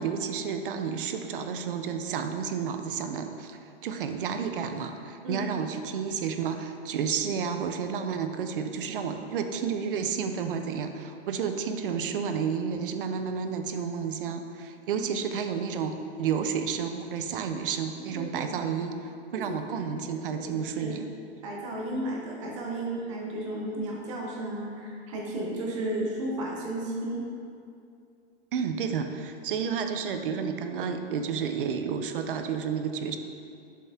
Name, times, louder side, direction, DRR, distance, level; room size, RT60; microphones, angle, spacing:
voice 1, 0.0-19.0 19.3-21.1 28.5-33.2, right 6 dB, 55° right, 7 dB, 0.5 m, -31 dB
voice 2, 18.1-18.5 19.3-20.9 21.4-27.2, right 1 dB, 30° right, -2 dB, 0.8 m, -34 dB
7.2 x 4.3 x 3.5 m, 2.5 s
supercardioid pair, 175°, 32 cm